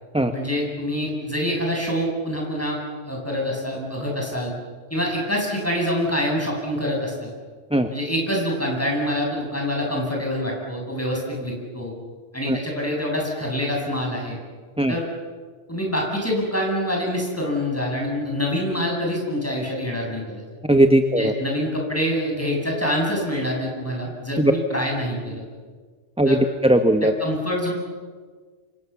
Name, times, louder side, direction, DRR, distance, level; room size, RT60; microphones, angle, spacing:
voice 1, 0.3-2.8 3.0-4.5 4.9-7.3 7.9-11.9 12.3-14.4 14.9-15.1 15.7-20.4 21.2-25.4 26.2-26.4 27.0-27.7, equal, 10° left, -1 dB, 8.0 m, -26 dB
voice 2, 20.6-21.3 24.4-24.5 26.2-27.1, right 1 dB, 5° right, 7 dB, 1.0 m, -18 dB
28.5 x 25.5 x 7.2 m, 1.5 s
omnidirectional pair, 1.2 m